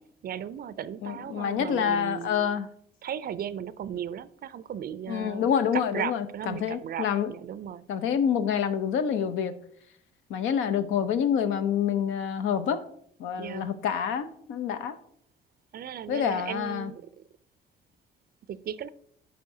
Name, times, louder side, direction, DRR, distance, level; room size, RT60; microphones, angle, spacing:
voice 1, 0.2-2.6 3.0-7.9 13.4-13.8 15.7-17.2 18.5-18.9, right 9 dB, 50° right, 17 dB, 0.4 m, -36 dB
voice 2, 1.0-2.7 5.1-7.3 7.9-9.6 10.3-12.8 13.2-15.0 16.1-16.9, left 8 dB, 90° left, 11 dB, 0.6 m, -27 dB
11.0 x 4.4 x 2.7 m, 0.67 s
cardioid pair, 90°, 20 cm